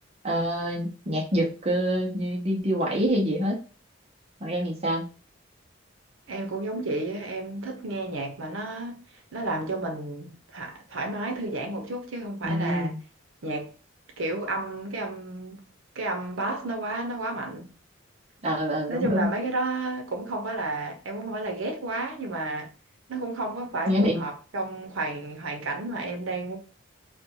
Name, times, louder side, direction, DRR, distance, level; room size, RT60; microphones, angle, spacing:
voice 1, 0.2-3.6 4.4-5.1 12.4-13.0 18.4-19.4 23.9-24.2, equal, 30° right, 0.6 m, -26 dB
voice 2, 6.3-9.0 9.3-12.9 13.4-13.7 14.2-15.6 15.9-17.7 18.9-22.7 23.1-26.6, right 2 dB, 75° right, 0.7 m, -31 dB
2.4 x 2.2 x 2.8 m
head